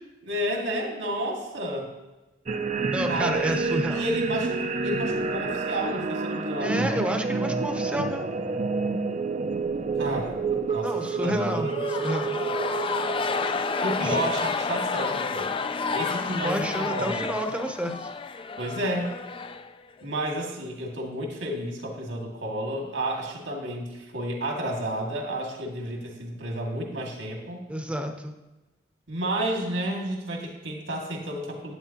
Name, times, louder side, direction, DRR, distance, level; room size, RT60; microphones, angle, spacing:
voice 1, 0.3-1.9 3.1-6.9 9.9-10.4 10.7-11.8 13.8-15.5 15.9-17.3 18.6-19.1 20.0-27.6 29.1-31.7, right 1 dB, 80° right, 0 dB, 2.1 m, -31 dB
sound 1, 2.5-15.2, right 4 dB, 40° right, 0.5 m, -29 dB
voice 2, 2.9-4.0 6.6-8.2 10.8-12.4 14.0-14.2 16.4-18.1 27.7-28.3, equal, 5° right, 5 dB, 0.8 m, -30 dB
sound 2, 11.6-20.1, left 5 dB, 30° left, 0.4 m, -30 dB
11.0 x 9.1 x 2.9 m, 1.1 s
head